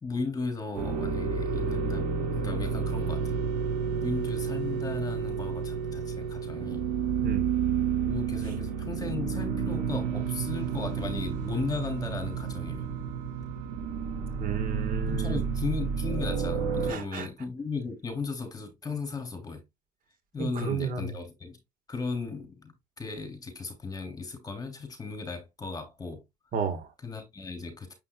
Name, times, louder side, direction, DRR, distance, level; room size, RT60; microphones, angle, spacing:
voice 1, 0.0-3.3 4.0-6.8 8.0-12.9 15.1-19.6 20.3-21.6 21.9-26.2 27.0-27.9, left 4 dB, 20° left, 3.0 m, -36 dB
sound 1, 0.7-16.9, right 6 dB, 80° right, 2.4 m, -30 dB
voice 2, 14.4-15.4 16.9-17.3 20.4-21.1 26.5-26.9, right 6 dB, 55° right, 1.6 m, -32 dB
7.4 x 5.6 x 2.3 m
cardioid pair, 110°, 17 cm